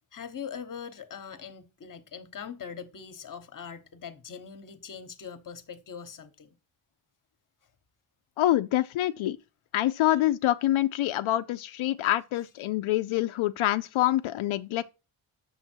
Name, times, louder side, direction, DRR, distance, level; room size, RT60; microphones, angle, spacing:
voice 1, 0.1-6.5 10.0-10.2, left 7 dB, 40° left, 1.1 m, -42 dB
voice 2, 8.4-9.4 9.7-14.9, left 14 dB, 85° left, 0.5 m, -26 dB
8.6 x 7.1 x 4.4 m
wide cardioid pair, 150°, 47 cm